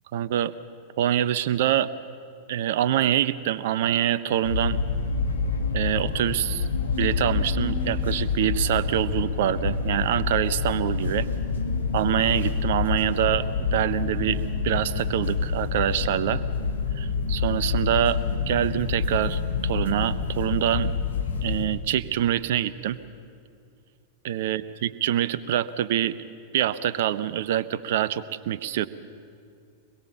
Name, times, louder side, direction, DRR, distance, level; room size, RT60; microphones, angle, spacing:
voice 1, 0.1-0.5 1.0-1.9 2.5-4.8 5.7-6.6 6.9-11.3 11.9-16.4 17.0-18.2 18.5-21.0 21.4-23.0 24.2-26.1 26.5-28.9, right 11 dB, 55° right, 15 dB, 0.8 m, -25 dB
sound 1, 4.4-21.7, left 5 dB, 70° left, 2.5 m, -27 dB
24.0 x 22.0 x 7.1 m, 2.4 s
figure-of-eight pair, 95°, 0 cm